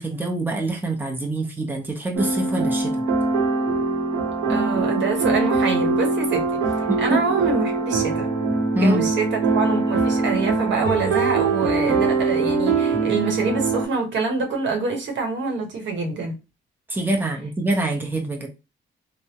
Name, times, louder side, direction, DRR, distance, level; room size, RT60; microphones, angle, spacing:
voice 1, 0.0-3.0 6.9-7.2 8.7-9.1 16.9-18.5, right 1 dB, 10° right, 0.8 m, -24 dB
sound 1, 2.1-13.9, right 3 dB, 90° right, 1.0 m, -22 dB
voice 2, 4.5-6.4 7.0-8.3 8.8-9.3 9.5-16.3, right 4 dB, 65° right, 1.0 m, -25 dB
3.4 x 2.1 x 2.8 m
cardioid pair, 90°, 20 cm